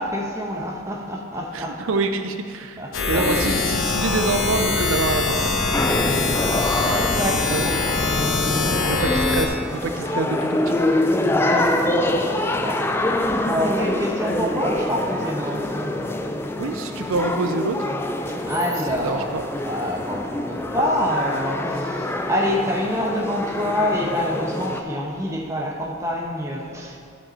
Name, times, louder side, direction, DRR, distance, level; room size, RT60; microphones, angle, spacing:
voice 1, 0.0-1.8 2.8-3.5 7.2-7.9 8.5-8.9 11.2-16.0 18.3-19.3 19.6-27.0, equal, 15° right, -1 dB, 0.9 m, -27 dB
voice 2, 1.5-5.6 6.9-7.1 7.5-7.9 8.8-10.8 16.6-17.9 19.0-19.4, right 3 dB, 80° right, 7 dB, 0.5 m, -26 dB
sound 1, 2.9-9.5, left 3 dB, 90° left, 1.0 m, -23 dB
sound 2, 5.7-24.8, left 1 dB, 10° left, 0.3 m, -25 dB
12.0 x 5.3 x 4.2 m, 2.3 s
head